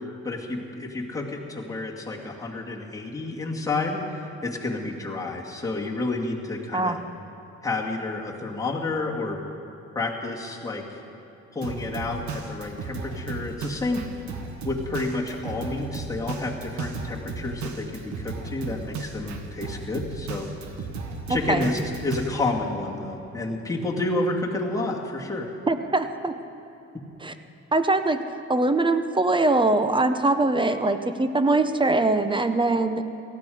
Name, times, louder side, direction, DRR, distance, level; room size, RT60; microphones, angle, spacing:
voice 1, 0.2-4.0 4.4-7.0 7.6-9.4 10.0-11.0 11.5-14.0 14.6-20.5 21.3-25.5, left 2 dB, 10° left, -3 dB, 2.2 m, -30 dB
Drum kit, 11.6-22.3, right 4 dB, 70° right, 1.5 m, -35 dB
voice 2, 21.3-21.7 25.7-26.3 27.2-27.3 27.7-28.2 28.5-33.0, right 2 dB, 15° right, 9 dB, 0.8 m, -22 dB
18.0 x 13.0 x 5.0 m, 2.9 s
cardioid pair, 90°, 30 cm